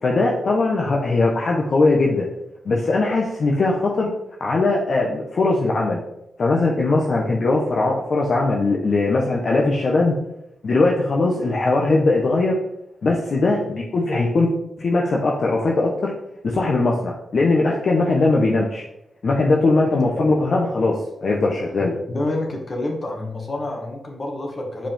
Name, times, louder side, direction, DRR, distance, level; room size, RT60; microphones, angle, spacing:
voice 1, 0.0-2.3 2.6-4.1 4.4-6.0 6.4-10.1 10.6-12.6 13.0-14.5 14.8-16.1 16.4-18.8 19.2-21.9, left 3 dB, 60° left, -2 dB, 1.1 m, -20 dB
voice 2, 22.1-24.9, left 2 dB, 40° left, 0 dB, 2.1 m, -28 dB
7.4 x 4.9 x 3.7 m, 0.85 s
cardioid pair, 60°, 0 cm